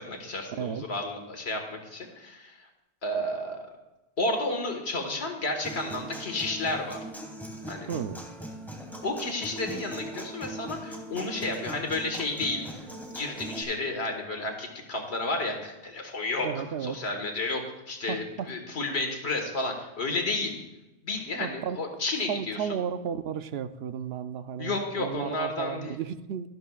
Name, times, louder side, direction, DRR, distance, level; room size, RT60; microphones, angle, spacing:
voice 1, 0.0-2.7 3.0-3.6 4.2-7.0 7.7-7.9 9.0-12.6 13.2-16.5 16.8-20.5 21.0-22.6 24.6-26.0, left 2 dB, 80° left, 3 dB, 1.8 m, -31 dB
voice 2, 0.6-0.9 7.9-8.3 16.4-17.0 18.1-18.5 21.4-21.8 22.3-26.5, right 8 dB, 75° right, 12 dB, 0.8 m, -33 dB
Human voice / Acoustic guitar, 5.6-13.6, right 1 dB, ahead, 1.6 m, -40 dB
12.5 x 12.0 x 2.4 m, 1.0 s
omnidirectional pair, 1.1 m